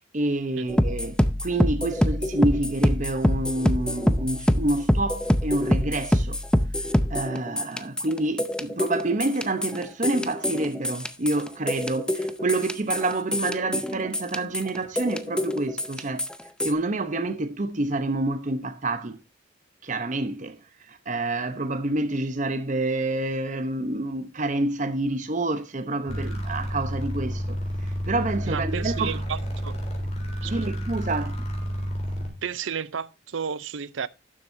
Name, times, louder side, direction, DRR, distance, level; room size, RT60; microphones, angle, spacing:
voice 1, 0.1-6.4 7.1-16.3 16.6-19.2 19.8-20.6 20.9-29.2 30.4-31.4, right 2 dB, 40° right, 0.8 m, -28 dB
sound 1, 0.7-16.7, equal, 5° left, 0.6 m, -25 dB
sound 2, 26.1-32.3, equal, 35° left, 3.6 m, -30 dB
voice 2, 28.4-29.8 30.4-30.7 32.2-34.1, right 6 dB, 75° right, 0.6 m, -32 dB
12.0 x 7.5 x 2.7 m
head